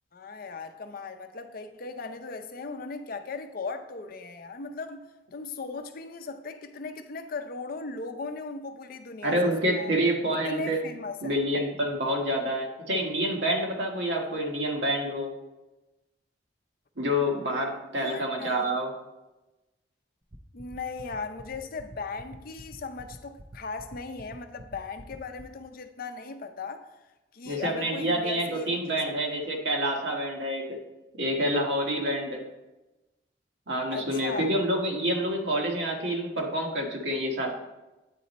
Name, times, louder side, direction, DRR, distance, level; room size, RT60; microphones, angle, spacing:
voice 1, 0.1-5.1 5.3-9.9 10.3-11.4 17.9-18.8 20.5-26.9 27.3-29.1 33.9-34.5, left 4 dB, 55° left, 0.5 m, -38 dB
voice 2, 9.2-10.8 11.2-15.3 17.0-18.9 27.5-30.8 31.2-32.4 33.7-37.5, equal, 70° right, 1.3 m, -27 dB
sound 1, 20.3-25.4, right 1 dB, 30° right, 0.6 m, -45 dB
8.7 x 4.2 x 4.1 m
head